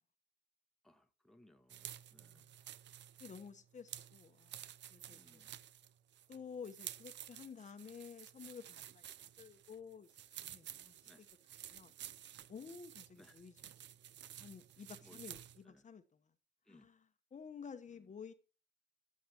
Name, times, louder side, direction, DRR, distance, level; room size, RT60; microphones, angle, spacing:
voice 1, 0.8-2.5 5.1-5.6 11.0-11.2 13.2-13.4 15.0-15.9 16.6-16.9 17.9-18.1, left 1 dB, ahead, 1.2 m, -66 dB
sound 1, 1.7-15.6, right 11 dB, 65° right, 0.6 m, -52 dB
voice 2, 3.2-5.4 6.3-9.1 9.4-10.9 11.7-11.9 12.5-13.5 14.4-16.3 16.7-17.1 17.3-18.3, left 6 dB, 35° left, 1.0 m, -52 dB
14.0 x 8.5 x 2.9 m
cardioid pair, 90°, 20 cm